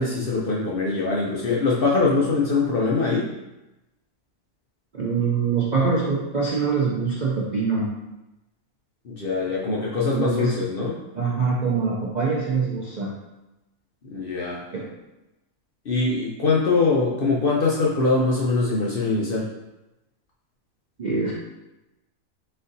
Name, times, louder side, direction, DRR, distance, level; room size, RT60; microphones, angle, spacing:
voice 1, 0.0-3.3 9.0-11.0 14.1-14.6 15.9-19.5, left 3 dB, 55° left, -4 dB, 0.6 m, -23 dB
voice 2, 4.9-7.9 10.1-10.5 11.2-13.1 14.7-14.9 21.0-21.3, right 5 dB, 55° right, -5 dB, 0.5 m, -24 dB
4.2 x 3.8 x 2.7 m, 0.97 s
omnidirectional pair, 1.5 m